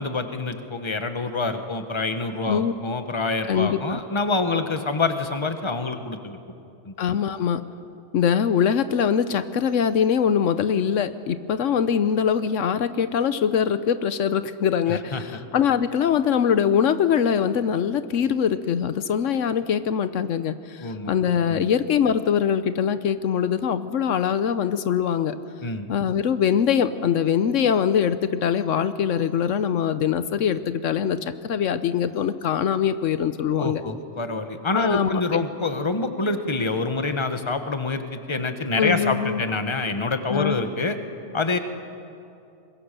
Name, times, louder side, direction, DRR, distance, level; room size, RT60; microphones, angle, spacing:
voice 1, 0.0-6.4 6.8-6.9 14.9-15.2 20.8-21.2 21.5-21.7 25.6-25.9 33.6-41.0 41.3-41.6, left 3 dB, 25° left, 8 dB, 1.3 m, -26 dB
voice 2, 3.4-4.0 7.0-7.6 8.1-25.4 25.9-33.8 34.7-35.4 38.8-39.4 40.3-40.6, left 8 dB, 80° left, 12 dB, 1.1 m, -23 dB
24.5 x 21.5 x 6.8 m, 2.6 s
omnidirectional pair, 1.3 m